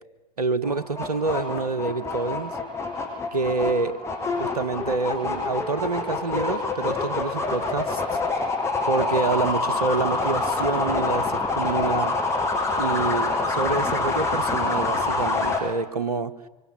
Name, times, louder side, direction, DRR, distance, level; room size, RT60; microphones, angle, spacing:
voice 1, 0.4-2.6 3.3-4.0 4.4-8.0 8.8-12.1 12.8-16.3, right 4 dB, 85° right, 13 dB, 1.4 m, -27 dB
sound 1, 0.6-15.6, left 3 dB, 15° left, 6.7 m, -26 dB
27.0 x 24.5 x 8.9 m, 1.1 s
figure-of-eight pair, 80°, 20 cm